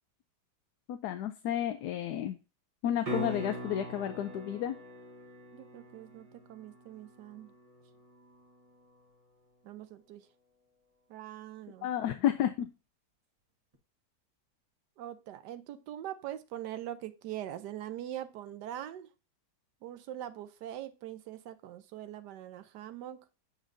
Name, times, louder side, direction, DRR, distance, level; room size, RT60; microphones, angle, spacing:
voice 1, 0.9-2.4 2.8-4.8 11.8-12.7, left 10 dB, 75° left, 8 dB, 1.1 m, -31 dB
sound 1, 3.0-9.1 13.7-13.8, right 1 dB, 25° right, 1.1 m, -43 dB
voice 2, 5.5-7.5 9.6-10.2 11.1-11.9 15.0-19.1 19.8-23.2, right 12 dB, 90° right, 11 dB, 1.2 m, -42 dB
8.6 x 5.2 x 2.6 m, 0.31 s
omnidirectional pair, 1.8 m